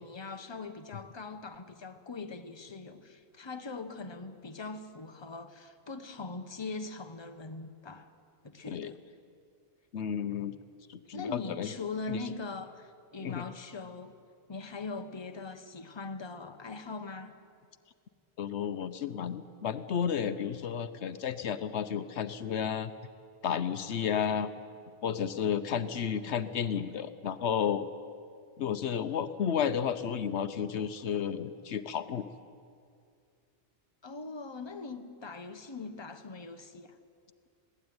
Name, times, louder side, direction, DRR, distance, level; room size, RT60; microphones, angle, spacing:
voice 1, 0.0-8.1 8.4-9.0 11.1-14.1 14.5-17.3 34.0-37.0, left 4 dB, 25° left, 7 dB, 1.1 m, -41 dB
voice 2, 9.9-10.6 10.9-11.7 12.1-12.2 13.2-13.4 18.4-22.9 23.4-24.5 25.0-27.9 28.6-32.3, left 8 dB, 80° left, 12 dB, 1.1 m, -32 dB
21.0 x 17.0 x 9.5 m, 2.3 s
omnidirectional pair, 1.1 m